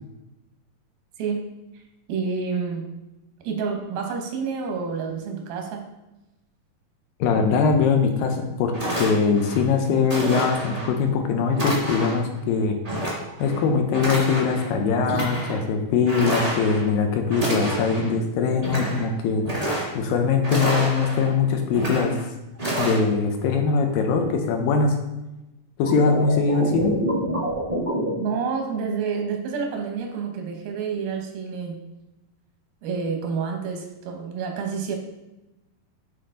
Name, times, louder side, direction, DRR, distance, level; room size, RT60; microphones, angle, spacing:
voice 1, 2.1-2.9 3.4-5.8 28.2-31.8 32.8-35.0, right 5 dB, 85° right, 3 dB, 2.9 m, -28 dB
voice 2, 7.2-12.8 13.4-19.4 19.9-22.2 22.8-25.0 25.8-26.9, left 5 dB, 80° left, 4 dB, 2.5 m, -22 dB
sound 1, 8.3-8.4 8.7-9.6 10.1-10.9 11.5-12.3 12.8-13.6 13.9-14.7 15.0-15.6 16.1-16.9 17.3-18.1 18.5-19.1 19.4-20.1 20.4-21.3 21.7-22.2 22.6-23.0, right 1 dB, 15° right, 1.2 m, -28 dB
sound 2, 25.9-28.1, right 1 dB, 70° right, 0.4 m, -26 dB
9.2 x 4.3 x 3.8 m, 0.97 s
omnidirectional pair, 4.1 m